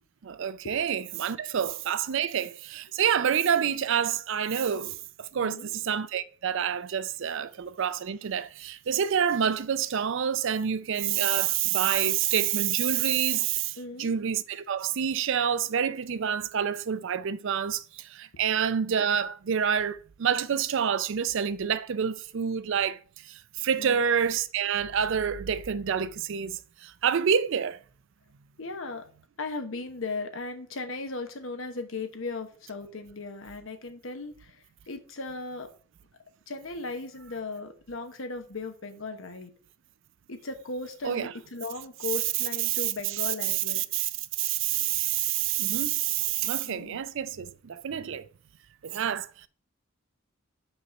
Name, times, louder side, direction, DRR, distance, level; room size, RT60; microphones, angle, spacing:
voice 1, 0.2-23.0 23.3-27.8 41.0-41.3 42.7-42.9 43.8-44.1 44.4-48.3 48.8-49.5, right 8 dB, 65° right, 0.4 m, -28 dB
voice 2, 5.4-5.7 13.8-14.1 23.8-24.0 28.6-29.1 29.4-35.7 36.5-39.5 40.3-43.8 46.6-47.0, left 3 dB, 70° left, 1.1 m, -37 dB
5.5 x 4.2 x 5.9 m
head